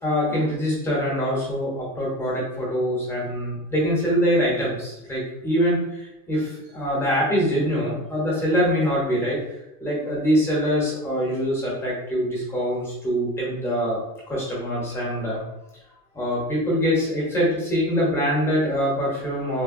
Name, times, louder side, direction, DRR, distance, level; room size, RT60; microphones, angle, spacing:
voice 1, 0.0-9.4 9.8-14.0 14.3-15.4 16.1-19.6, equal, 5° left, -5 dB, 0.7 m, -24 dB
3.2 x 2.2 x 2.5 m, 0.92 s
supercardioid pair, 155°, 43 cm